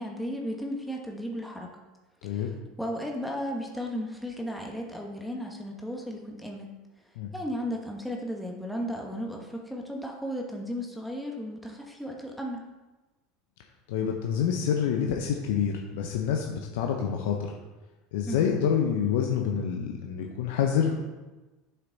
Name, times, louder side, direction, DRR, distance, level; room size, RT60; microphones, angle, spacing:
voice 1, 0.0-1.7 2.2-2.5 2.8-6.7 7.3-12.7 18.3-18.6, equal, ahead, 0 dB, 1.4 m, -35 dB
voice 2, 13.9-17.6 18.1-21.0, left 8 dB, 70° left, 2 dB, 0.8 m, -27 dB
7.9 x 5.9 x 4.0 m, 1.2 s
hypercardioid pair, 85°, 0 cm